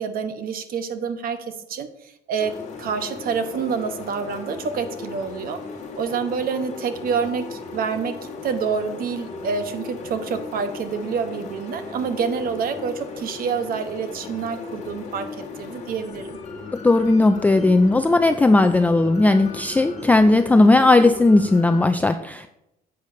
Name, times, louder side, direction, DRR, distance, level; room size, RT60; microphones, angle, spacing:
voice 1, 0.0-2.5 2.8-5.6 6.0-15.3 15.6-16.4, right 6 dB, 60° right, 9 dB, 0.9 m, -27 dB
sound 1, 2.4-21.9, left 4 dB, 45° left, 1.6 m, -37 dB
voice 2, 16.8-22.5, left 2 dB, 10° left, 8 dB, 0.4 m, -16 dB
10.5 x 8.1 x 2.6 m, 0.84 s
cardioid pair, 110°, 17 cm